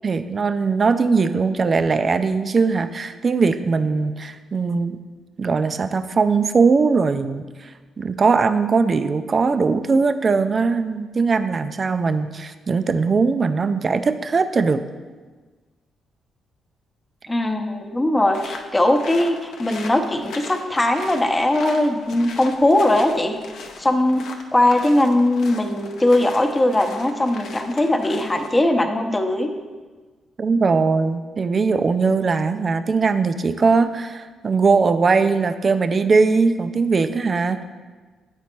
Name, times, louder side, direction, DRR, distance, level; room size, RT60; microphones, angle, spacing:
voice 1, 0.0-5.0 5.4-7.7 8.0-14.8 30.4-37.6, right 4 dB, 45° right, 10 dB, 0.5 m, -20 dB
voice 2, 17.3-23.4 23.8-24.2 24.5-29.5, left 1 dB, 20° left, 5 dB, 0.8 m, -20 dB
sound 1, 18.3-28.6, left 4 dB, 75° left, 0.6 m, -39 dB
8.3 x 4.1 x 4.5 m, 1.4 s
supercardioid pair, 55°, 0 cm